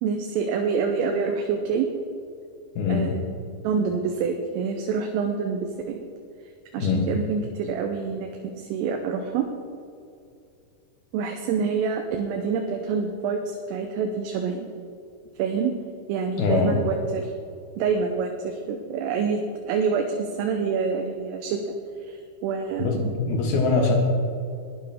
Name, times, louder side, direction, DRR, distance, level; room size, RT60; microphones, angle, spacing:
voice 1, 0.0-1.9 2.9-3.2 3.6-6.0 6.7-9.5 11.1-14.7 15.4-15.7 16.1-17.3 17.8-23.1, right 5 dB, 80° right, 3 dB, 3.3 m, -27 dB
voice 2, 2.8-3.2 6.8-7.1 16.4-16.8 22.8-24.0, left 4 dB, 65° left, 1 dB, 2.7 m, -23 dB
20.5 x 10.0 x 3.6 m, 2.4 s
omnidirectional pair, 5.9 m